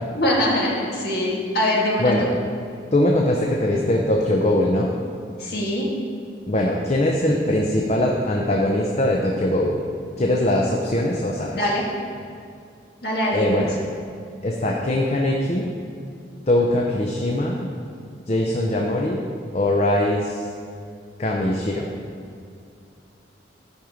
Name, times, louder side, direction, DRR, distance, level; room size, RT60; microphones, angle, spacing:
voice 1, 0.1-2.3 5.4-5.9 11.5-11.8 13.0-13.7, left 1 dB, 55° left, -4 dB, 1.9 m, -23 dB
voice 2, 2.9-4.9 6.5-9.9 10.2-11.6 13.3-13.7 14.4-15.7 16.5-17.7 18.3-19.2 19.5-20.5 21.2-21.9, left 1 dB, 35° left, -1 dB, 0.6 m, -21 dB
10.5 x 5.4 x 5.1 m, 2.4 s
head